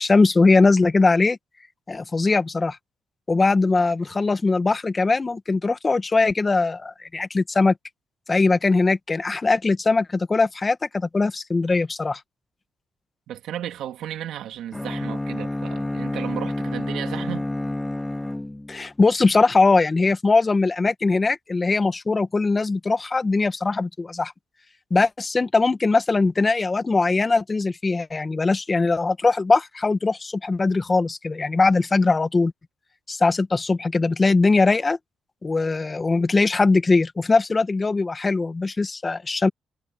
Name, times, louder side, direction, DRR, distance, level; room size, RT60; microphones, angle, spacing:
voice 1, 0.0-1.4 1.9-2.8 3.3-7.7 8.3-12.2 18.7-24.3 24.9-32.5 33.1-35.0 35.4-39.5, left 3 dB, 25° left, 1.5 m, -20 dB
voice 2, 13.3-17.5, right 11 dB, 80° right, 2.8 m, -34 dB
Bowed string instrument, 14.7-18.9, left 1 dB, 10° left, 3.5 m, -29 dB
cardioid pair, 90°, 0 cm